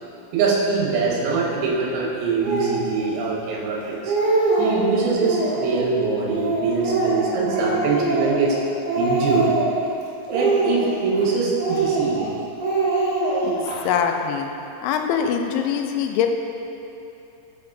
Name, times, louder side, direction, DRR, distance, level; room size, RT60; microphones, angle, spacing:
voice 1, 0.3-4.1 4.6-8.6 9.0-9.5 10.3-12.3, right 4 dB, 75° right, -3 dB, 3.1 m, -23 dB
Speech, 2.4-2.8 3.5-3.6 3.9-4.8 5.2-5.8 6.3-8.6 8.9-9.8 10.3-11.2 11.6-12.3 12.6-13.8, right 3 dB, 60° right, 2.3 m, -23 dB
voice 2, 13.9-14.5 14.8-16.3, left 8 dB, 85° left, 5 dB, 2.9 m, -23 dB
9.4 x 5.7 x 2.6 m, 2.9 s
omnidirectional pair, 5.2 m